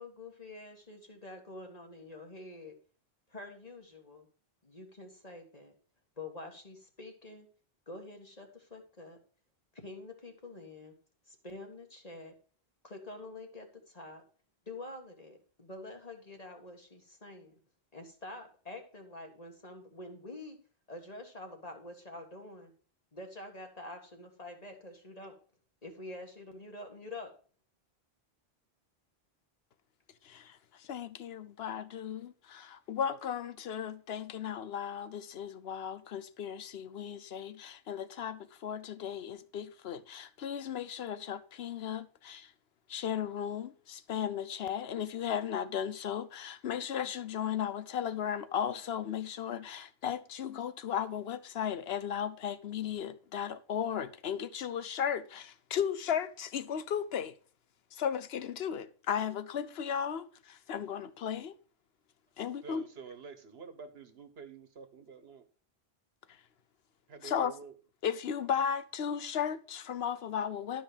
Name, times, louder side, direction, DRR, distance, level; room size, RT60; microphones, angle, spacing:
voice 1, 0.0-2.7 3.3-4.3 4.6-5.7 6.2-7.5 7.9-9.2 9.7-10.9 11.3-12.3 12.8-14.2 14.7-17.5 17.9-20.6 20.9-22.7 23.1-25.3 25.8-27.3, left 2 dB, 40° left, 1.9 m, -47 dB
voice 2, 30.2-42.5 42.9-57.3 57.9-61.6 62.4-62.8 67.2-67.6 68.0-70.8, left 8 dB, 75° left, 1.0 m, -35 dB
voice 3, 62.6-65.4 67.1-67.7, right 5 dB, 75° right, 1.5 m, -48 dB
12.0 x 5.5 x 5.1 m
omnidirectional pair, 1.0 m